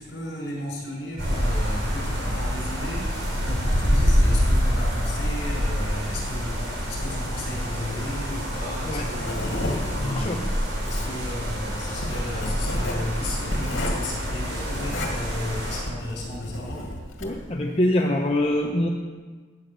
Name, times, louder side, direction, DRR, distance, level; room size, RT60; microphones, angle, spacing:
voice 1, 0.0-10.4 10.9-16.8, left 1 dB, 60° left, -3 dB, 5.2 m, -34 dB
sound 1, 1.2-15.8, equal, 80° right, 5.2 m, -26 dB
Writing, 8.5-17.5, left 1 dB, 80° left, 2.2 m, -33 dB
voice 2, 10.0-10.4 17.2-18.9, left 1 dB, 30° left, 0 dB, 0.9 m, -24 dB
14.0 x 9.2 x 6.7 m, 1.5 s
head